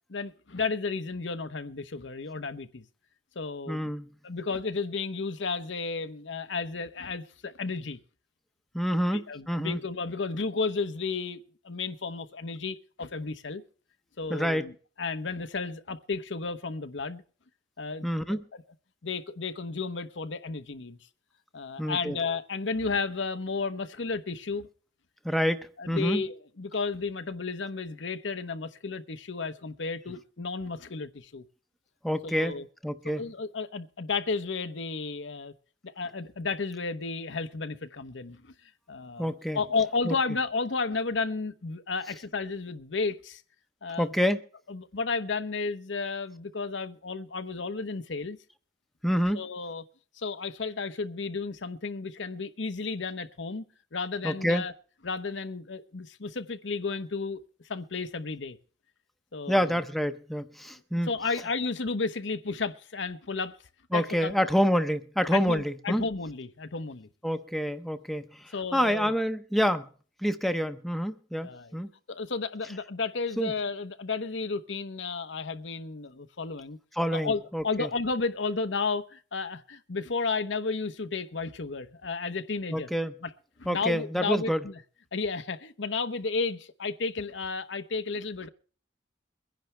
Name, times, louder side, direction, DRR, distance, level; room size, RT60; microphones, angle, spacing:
voice 1, 0.1-2.8 3.3-3.9 4.2-8.0 9.1-11.4 11.6-13.6 14.2-14.7 15.0-17.2 17.8-18.6 19.0-21.0 21.5-24.7 25.8-31.4 32.2-32.7 33.2-35.5 35.8-38.5 38.9-43.4 43.8-44.2 44.7-48.4 49.3-49.8 50.1-53.7 53.9-54.7 55.0-57.4 57.7-58.6 59.3-59.8 61.0-63.5 63.9-64.3 65.3-67.1 68.5-69.1 71.4-71.8 72.1-76.8 77.1-82.9 83.2-83.3 83.6-84.8 85.1-88.5, left 4 dB, 85° left, 0.9 m, -33 dB
voice 2, 3.7-4.1 8.7-9.8 14.3-14.6 18.0-18.4 21.8-22.2 25.2-26.2 32.0-32.6 32.8-33.2 39.2-39.6 40.1-40.2 44.0-44.4 49.0-49.4 54.2-54.6 59.5-61.1 63.9-66.0 67.2-69.9 70.2-71.9 73.4-73.5 77.0-77.9 82.7-83.1 83.7-84.7, equal, ahead, 0.8 m, -27 dB
23.0 x 10.5 x 3.3 m
head